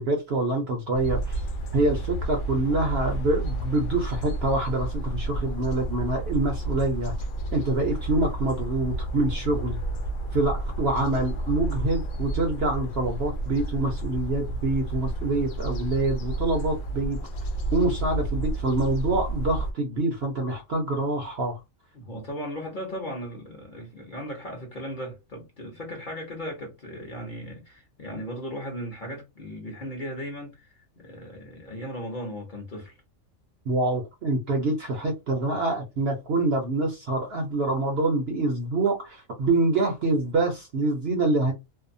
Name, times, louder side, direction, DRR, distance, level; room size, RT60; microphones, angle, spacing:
voice 1, 0.0-1.4 1.7-7.1 7.5-9.8 10.3-17.2 17.7-21.6 33.7-41.5, right 2 dB, 60° right, 0.7 m, -26 dB
sound 1, 0.9-19.7, right 1 dB, 70° left, 0.9 m, -31 dB
voice 2, 21.9-33.0, equal, 40° left, 0.8 m, -37 dB
2.6 x 2.1 x 2.5 m
omnidirectional pair, 1.5 m